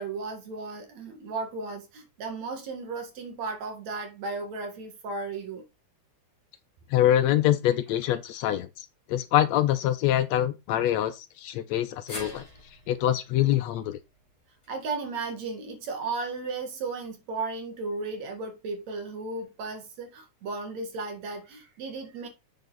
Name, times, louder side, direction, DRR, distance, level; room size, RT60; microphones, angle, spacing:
voice 1, 0.0-5.6 14.7-22.3, right 3 dB, 65° right, 3.1 m, -35 dB
voice 2, 6.9-12.4 12.9-14.0, left 12 dB, 75° left, 1.8 m, -25 dB
sound 1, 12.1-16.3 16.7-16.8 18.0-18.1, equal, 10° left, 3.4 m, -46 dB
7.9 x 6.6 x 4.0 m
omnidirectional pair, 3.4 m